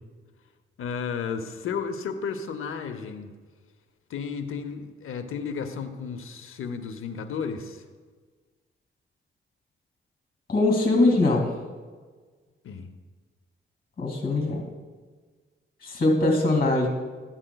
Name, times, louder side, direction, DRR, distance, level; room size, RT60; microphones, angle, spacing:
voice 1, 0.8-3.3 4.1-7.8 12.6-12.9, left 6 dB, 80° left, 8 dB, 0.7 m, -33 dB
voice 2, 10.5-11.5 14.0-14.6 15.8-16.9, left 2 dB, 45° left, 2 dB, 2.2 m, -22 dB
12.5 x 8.8 x 2.2 m, 1.5 s
cardioid pair, 85°, 21 cm